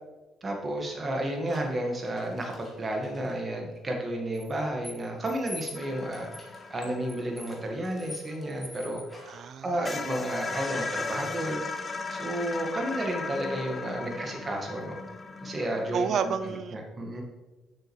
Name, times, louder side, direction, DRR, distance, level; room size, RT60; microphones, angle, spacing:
voice 1, 0.4-6.3 6.7-9.0 9.6-11.6 12.1-15.0 15.4-17.2, right 1 dB, 35° right, 2 dB, 1.6 m, -32 dB
sound 1, 1.5-3.4 4.3-9.5 10.5-11.1, left 2 dB, 20° left, 2.0 m, -46 dB
sound 2, 5.7-9.1 9.5-9.6 9.8-16.6, left 4 dB, 35° left, 0.6 m, -37 dB
voice 2, 9.3-10.1 15.9-16.8, right 7 dB, 60° right, 11 dB, 0.5 m, -31 dB
6.4 x 6.4 x 3.2 m, 1.1 s
supercardioid pair, 70°, 0 cm